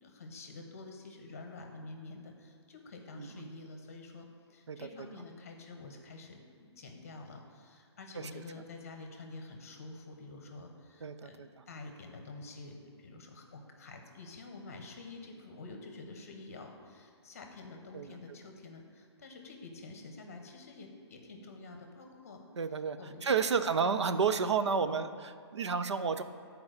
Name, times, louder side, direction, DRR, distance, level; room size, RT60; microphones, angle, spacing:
voice 1, 0.0-22.4 23.0-23.6 24.9-25.0, left 3 dB, 30° left, 3 dB, 1.0 m, -48 dB
voice 2, 3.1-3.5 4.7-4.8 8.2-8.3 11.0-11.5 17.9-18.1 22.6-26.2, right 6 dB, 75° right, 10 dB, 0.6 m, -31 dB
9.7 x 4.7 x 6.6 m, 2.3 s
hypercardioid pair, 180°, 15 cm